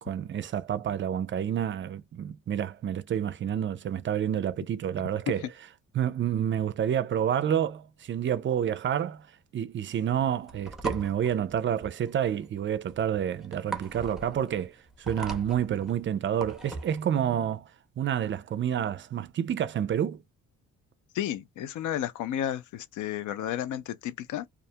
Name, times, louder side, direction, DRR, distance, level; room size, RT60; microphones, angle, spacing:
voice 1, 0.0-5.5 5.9-9.3 9.5-17.7 18.0-20.2, right 9 dB, 40° right, 0.4 m, -29 dB
sound 1, 10.4-17.0, right 3 dB, ahead, 0.6 m, -39 dB
voice 2, 21.1-24.5, left 11 dB, 75° left, 0.5 m, -32 dB
2.4 x 2.1 x 2.7 m
cardioid pair, 90°, 30 cm